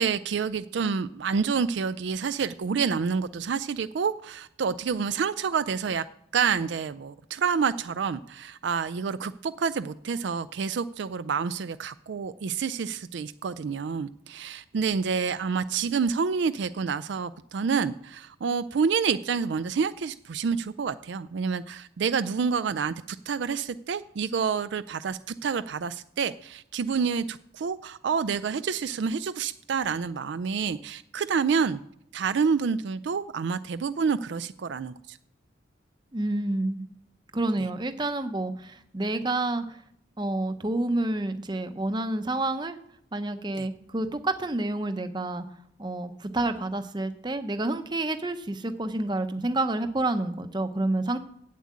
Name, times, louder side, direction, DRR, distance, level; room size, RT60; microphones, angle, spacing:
voice 1, 0.0-6.0 6.3-22.9 23.3-31.8 32.1-35.2 43.6-43.7, right 6 dB, 60° right, 12 dB, 0.4 m, -28 dB
voice 2, 36.1-36.9 37.3-39.8 40.2-42.8 43.1-45.4 45.8-51.2, right 2 dB, 20° right, 9 dB, 0.7 m, -29 dB
8.5 x 7.4 x 8.4 m, 0.71 s
head